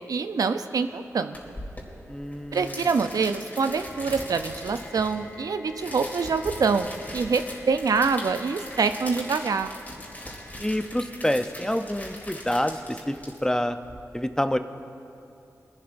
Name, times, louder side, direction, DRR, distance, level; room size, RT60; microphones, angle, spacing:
voice 1, 0.1-1.4 2.5-9.7, right 5 dB, 80° right, 9 dB, 0.5 m, -25 dB
sound 1, 1.3-14.0, left 1 dB, 25° left, 3.0 m, -40 dB
voice 2, 2.1-2.9 10.6-13.8 14.1-14.6, left 1 dB, 10° left, 8 dB, 0.6 m, -27 dB
sound 2, 2.2-12.1, left 4 dB, 85° left, 1.7 m, -49 dB
24.0 x 11.5 x 2.6 m, 2.7 s
cardioid pair, 55°, 6 cm